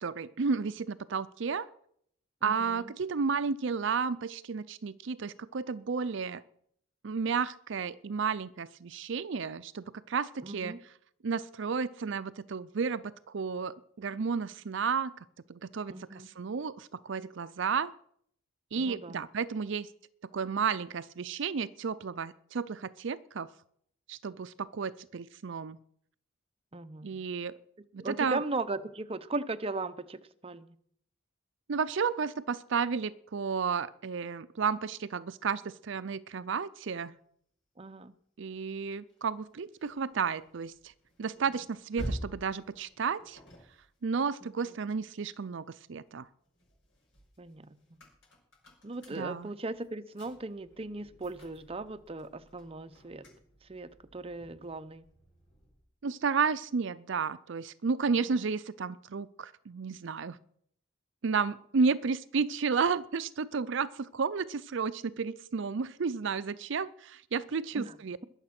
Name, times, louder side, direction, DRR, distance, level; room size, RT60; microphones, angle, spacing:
voice 1, 0.0-1.7 2.4-6.4 7.0-10.9 11.2-15.1 15.5-17.9 18.7-19.9 20.3-23.5 24.1-25.8 27.0-27.6 27.9-28.4 31.7-37.1 38.4-40.9 41.2-43.4 44.0-46.3 49.1-49.5 56.0-60.4 61.2-68.2, right 5 dB, 65° right, 14 dB, 0.5 m, -32 dB
voice 2, 2.4-2.9 10.4-10.8 15.9-16.3 18.7-19.2 26.7-27.2 28.0-30.7 37.8-38.1 44.4-44.5 47.4-48.0 48.8-53.2 53.7-55.1 67.7-67.9, right 2 dB, 30° right, 10 dB, 0.7 m, -38 dB
sound 1, 39.1-45.6 46.1-55.9, equal, 65° left, 6.0 m, -48 dB
21.5 x 7.3 x 5.9 m, 0.66 s
head